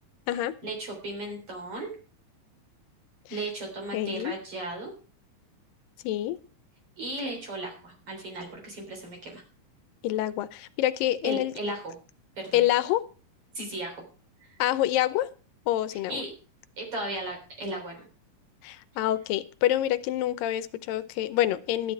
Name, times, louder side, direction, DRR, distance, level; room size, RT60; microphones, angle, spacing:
voice 1, 0.6-1.9 3.3-4.9 7.0-9.4 11.2-12.0 12.4-12.6 13.5-14.0 14.4-14.6 15.9-16.3 16.8-18.1, right 2 dB, 40° right, 2 dB, 4.4 m, -36 dB
voice 2, 3.9-4.3 6.0-6.4 10.0-11.5 12.5-13.1 14.6-15.3 15.7-16.2 18.6-21.9, left 13 dB, 90° left, 14 dB, 2.5 m, -27 dB
12.5 x 10.5 x 4.6 m, 0.38 s
omnidirectional pair, 3.9 m